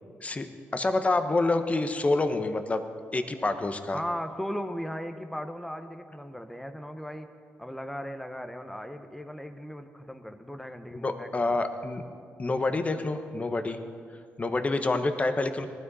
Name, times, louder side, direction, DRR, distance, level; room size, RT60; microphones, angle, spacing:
voice 1, 0.2-2.8 3.1-4.0 11.0-12.0 12.4-13.8 14.4-15.7, left 2 dB, 30° left, 8 dB, 1.1 m, -27 dB
voice 2, 3.9-7.3 7.6-11.5, equal, 5° left, 8 dB, 1.1 m, -37 dB
19.0 x 12.5 x 4.2 m, 2.2 s
cardioid pair, 70°, 5 cm